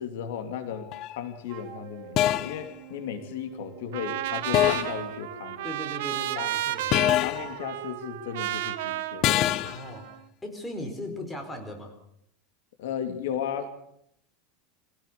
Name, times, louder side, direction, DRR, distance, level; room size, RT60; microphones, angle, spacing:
voice 1, 0.0-5.7 6.3-6.5 7.2-9.3 12.8-13.7, left 8 dB, 80° left, 8 dB, 2.9 m, -35 dB
sound 1, 0.9-1.2 2.2-2.6 4.5-5.0 6.9-7.5 9.2-9.8, left 13 dB, 40° left, 0.8 m, -24 dB
Wind instrument woodwind instrument, 1.4-4.3, right 13 dB, 45° right, 2.9 m, -47 dB
Trumpet, 3.9-10.1, right 14 dB, 75° right, 1.7 m, -33 dB
voice 2, 5.6-7.1 9.6-10.1 10.4-11.9, left 1 dB, 10° left, 4 dB, 4.6 m, -38 dB
24.5 x 17.0 x 6.9 m, 0.73 s
supercardioid pair, 150°, 0 cm